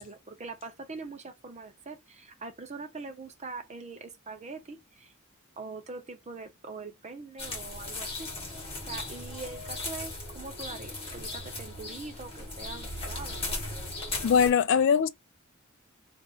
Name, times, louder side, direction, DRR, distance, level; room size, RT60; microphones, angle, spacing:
voice 1, 0.0-5.1 5.6-8.3 8.8-13.6, right 3 dB, 30° right, 0.6 m, -43 dB
sound 1, 7.4-14.5, left 2 dB, 25° left, 1.5 m, -37 dB
voice 2, 14.2-15.1, left 7 dB, 60° left, 0.3 m, -21 dB
3.0 x 2.5 x 3.8 m
head